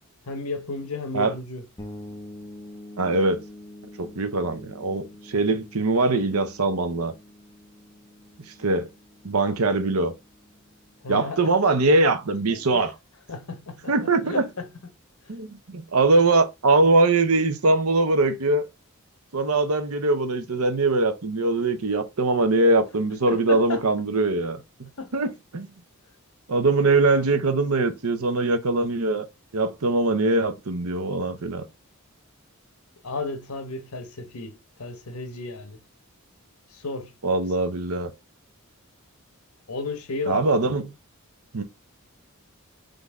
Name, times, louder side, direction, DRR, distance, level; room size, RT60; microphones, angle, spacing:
voice 1, 0.2-1.6 11.0-11.4 12.5-12.9 13.3-14.7 15.2-15.4 23.3-23.8 25.0-25.3 33.0-35.8 36.7-37.1 39.7-40.5, left 3 dB, 90° left, 1.0 m, -33 dB
sound 1, 1.8-11.4, left 1 dB, 20° left, 0.8 m, -46 dB
voice 2, 3.0-3.4 4.0-7.1 8.6-8.9 9.2-10.1 11.1-12.9 13.9-14.4 15.3-18.7 19.3-25.7 26.5-29.2 29.5-31.7 37.2-38.1 40.3-40.9 41.5-41.6, right 2 dB, 85° right, 0.8 m, -22 dB
3.9 x 3.4 x 3.5 m
head